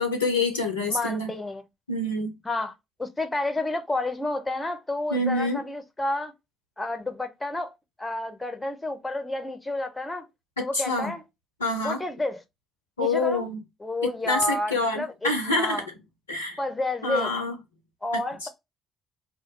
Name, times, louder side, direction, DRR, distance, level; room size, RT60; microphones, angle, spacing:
voice 1, 0.0-1.3 1.9-2.3 5.1-5.6 10.6-11.1 11.6-12.0 13.0-13.6 14.0-15.8 16.3-16.6 17.0-17.5 18.4-18.5, left 2 dB, 85° left, 0.4 m, -26 dB
voice 2, 0.9-1.6 2.4-2.7 3.0-6.3 6.8-10.3 10.6-11.2 11.8-12.4 13.0-13.5 13.8-15.9 16.6-17.3 18.0-18.5, left 2 dB, 15° left, 0.7 m, -30 dB
2.2 x 2.2 x 2.8 m
figure-of-eight pair, 45°, 0 cm